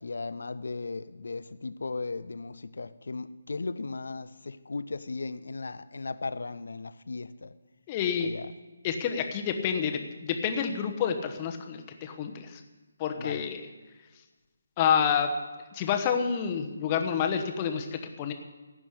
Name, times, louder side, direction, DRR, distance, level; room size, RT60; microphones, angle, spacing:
voice 1, 0.0-7.5 8.2-8.5 13.2-13.4, left 3 dB, 60° left, 14 dB, 0.6 m, -36 dB
voice 2, 7.9-8.3 8.8-12.6 13.0-13.6 14.8-15.3 15.7-18.3, left 7 dB, 25° left, 5 dB, 1.1 m, -28 dB
15.5 x 6.2 x 8.4 m, 1.2 s
figure-of-eight pair, 145°, 0 cm